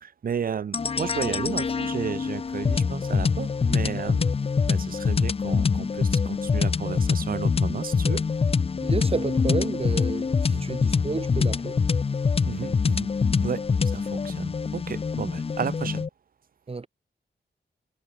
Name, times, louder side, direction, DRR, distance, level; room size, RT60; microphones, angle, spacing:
voice 1, 0.0-4.3 4.7-8.2 12.4-13.1 13.4-16.1, right 7 dB, 50° right, 0.6 m, -33 dB
sound 1, 0.7-16.1, left 5 dB, 30° left, 0.4 m, -25 dB
voice 2, 8.8-11.8 16.7-16.9, right 4 dB, 30° right, 1.1 m, -30 dB
wide cardioid pair, 110°, 19 cm